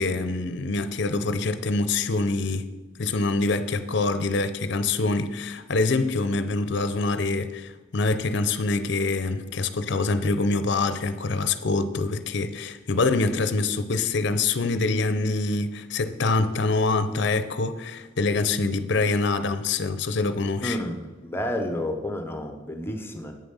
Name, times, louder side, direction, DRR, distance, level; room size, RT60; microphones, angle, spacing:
voice 1, 0.0-2.7 3.0-20.8, left 3 dB, 55° left, 0.5 m, -25 dB
voice 2, 20.6-23.3, left 1 dB, 10° left, 0.7 m, -30 dB
8.6 x 7.0 x 5.5 m
head